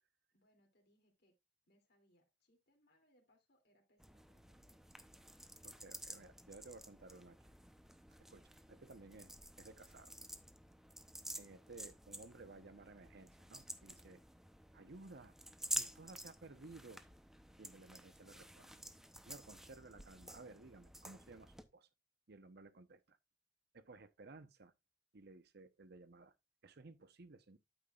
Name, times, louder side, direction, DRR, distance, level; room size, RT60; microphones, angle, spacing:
voice 1, 0.3-1.3 1.7-4.9, equal, 60° left, 2.8 m, -75 dB
sound 1, 4.0-21.6, right 1 dB, ahead, 0.7 m, -50 dB
voice 2, 5.6-7.4 8.3-10.1 11.4-14.2 14.7-15.3 15.7-17.0 17.6-18.8 19.2-21.9 22.3-23.2 23.7-24.7 25.1-26.3 26.6-27.6, right 3 dB, 60° right, 0.9 m, -57 dB
9.0 x 8.7 x 2.4 m
head